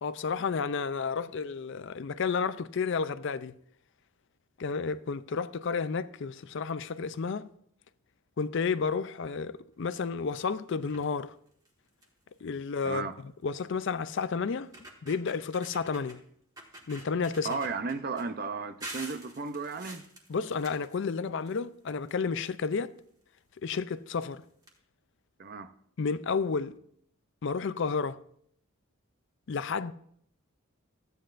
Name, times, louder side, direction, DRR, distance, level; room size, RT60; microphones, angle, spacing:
voice 1, 0.0-3.5 4.6-7.5 8.4-11.4 12.4-13.1 13.4-14.7 15.0-16.2 16.9-17.6 20.3-22.9 23.6-24.4 26.0-26.7 27.4-28.2 29.5-29.9, left 5 dB, 55° left, 0.4 m, -31 dB
sound 1, 10.8-11.2 11.7-11.8 12.0-12.3 13.5-13.6 14.2-14.3 14.6-16.2 16.6-18.2 18.8-21.6 21.9-23.0 23.9-24.0 24.3-24.4 24.6-24.7, right 1 dB, 15° right, 1.5 m, -46 dB
voice 2, 17.4-20.0 25.4-25.7, right 4 dB, 45° right, 0.6 m, -34 dB
15.0 x 9.3 x 2.5 m
head